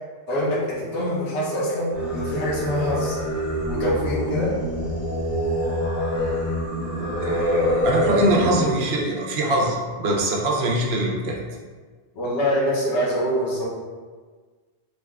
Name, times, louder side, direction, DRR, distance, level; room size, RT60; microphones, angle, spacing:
voice 1, 0.3-3.2 3.7-4.6 12.1-13.7, equal, 80° left, -5 dB, 1.1 m, -24 dB
Singing, 1.9-8.6, left 1 dB, 15° right, 0.8 m, -26 dB
voice 2, 7.2-11.5, right 1 dB, 70° right, -1 dB, 0.8 m, -23 dB
3.0 x 2.2 x 3.4 m, 1.5 s
omnidirectional pair, 1.2 m